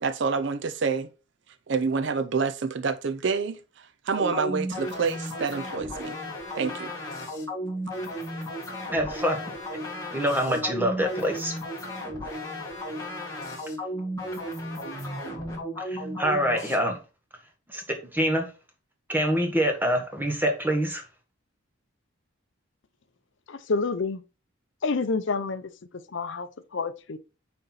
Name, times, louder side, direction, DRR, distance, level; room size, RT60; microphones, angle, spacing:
voice 1, 0.0-1.1 1.7-6.2 6.6-6.9, right 5 dB, 60° right, 0.5 m, -28 dB
sound 1, 4.1-16.7, equal, 15° left, 1.9 m, -34 dB
voice 2, 8.9-9.4 10.1-11.5 15.8-17.0 17.7-17.8 18.1-18.5 19.1-21.0, equal, 10° right, 1.3 m, -25 dB
voice 3, 23.5-24.2 24.8-25.7 26.1-27.2, left 4 dB, 65° left, 0.5 m, -28 dB
6.5 x 4.4 x 4.0 m
head